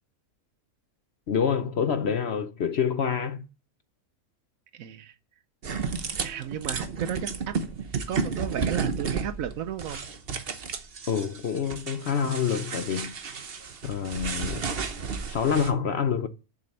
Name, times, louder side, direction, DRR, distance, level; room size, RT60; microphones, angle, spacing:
voice 1, 1.3-3.4 11.1-13.1 13.8-14.7 15.3-16.3, left 7 dB, 55° left, 0.8 m, -27 dB
voice 2, 4.7-5.1 6.2-7.6 8.1-10.0, right 9 dB, 70° right, 1.1 m, -33 dB
sound 1, 5.6-15.7, right 5 dB, 45° right, 1.1 m, -33 dB
7.2 x 6.9 x 7.8 m
omnidirectional pair, 1.6 m